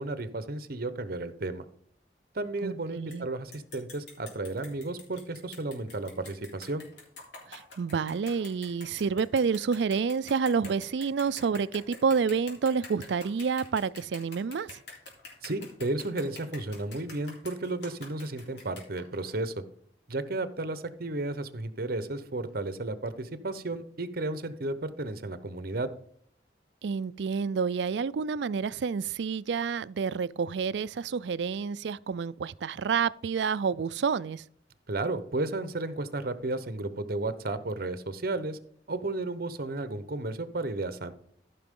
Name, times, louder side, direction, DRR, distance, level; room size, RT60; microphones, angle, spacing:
voice 1, 0.0-1.6 2.3-6.8 15.4-19.6 20.1-25.9 34.9-38.6 38.9-41.1, right 2 dB, 55° right, 0.9 m, -33 dB
voice 2, 2.6-3.3 7.5-14.8 26.8-34.4, right 5 dB, 80° right, 0.4 m, -29 dB
sound 1, 3.1-3.2 3.5-19.3, left 3 dB, 75° left, 3.4 m, -47 dB
14.0 x 5.9 x 3.7 m
head